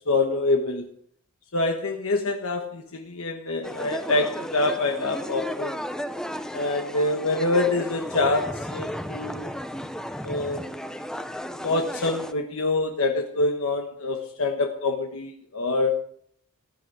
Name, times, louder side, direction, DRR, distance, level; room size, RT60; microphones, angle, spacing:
voice 1, 0.1-0.9 1.5-5.8 6.5-9.5 10.2-10.7 11.6-15.9, left 2 dB, 70° left, 4 dB, 1.2 m, -26 dB
sound 1, 3.6-12.3, equal, 5° left, 0.6 m, -34 dB
15.5 x 10.5 x 4.8 m, 0.64 s
head